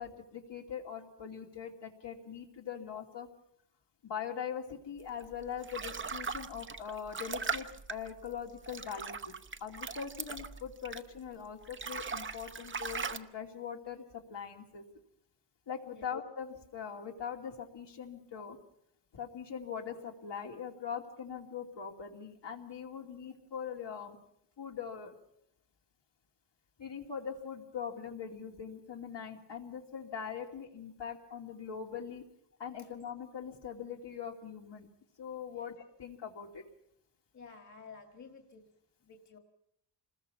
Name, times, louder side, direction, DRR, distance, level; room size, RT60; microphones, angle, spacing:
voice 1, 0.0-3.3 4.0-9.3 9.6-14.8 15.7-18.6 19.1-24.2 24.6-25.2 26.8-32.2 32.6-34.9 35.2-36.6, left 7 dB, 75° left, 1 dB, 2.9 m, -42 dB
sound 1, 5.2-11.3 11.6-13.2, right 5 dB, 30° right, 0.8 m, -40 dB
voice 2, 37.3-38.7 39.0-39.4, left 5 dB, 40° left, 5 dB, 2.1 m, -52 dB
27.0 x 20.5 x 5.8 m, 0.75 s
wide cardioid pair, 155°, 43 cm